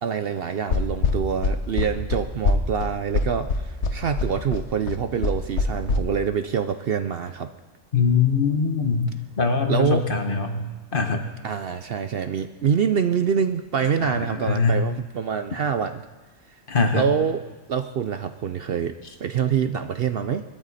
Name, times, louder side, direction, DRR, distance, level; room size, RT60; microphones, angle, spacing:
voice 1, 0.0-7.5 9.7-10.1 11.4-16.0 16.9-17.4 17.7-18.9 19.2-20.4, right 7 dB, 60° right, 9 dB, 0.7 m, -25 dB
sound 1, 0.7-6.0, left 4 dB, 65° left, 1.3 m, -23 dB
voice 2, 7.9-11.2 14.0-14.1 14.5-14.8 16.7-17.0, left 5 dB, 45° left, 6 dB, 1.3 m, -22 dB
22.0 x 13.0 x 4.2 m, 1.2 s
omnidirectional pair, 1.3 m